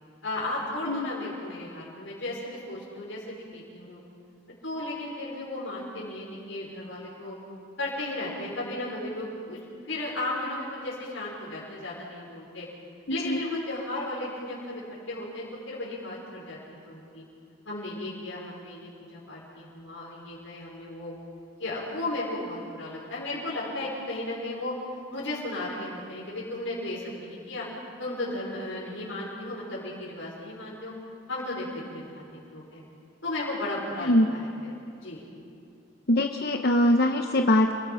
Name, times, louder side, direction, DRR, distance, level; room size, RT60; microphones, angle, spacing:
voice 1, 0.2-4.0 4.6-7.4 7.8-9.6 9.9-12.7 13.1-14.8 15.1-17.2 17.7-21.1 21.6-24.7 25.1-27.7 28.0-30.9 31.3-32.8 33.2-34.7 35.0-35.2, left 2 dB, 75° left, -6 dB, 5.6 m, -35 dB
voice 2, 13.1-13.4 34.0-34.3 36.1-37.7, left 1 dB, 55° left, 4 dB, 1.0 m, -22 dB
29.0 x 20.5 x 5.7 m, 2.6 s
head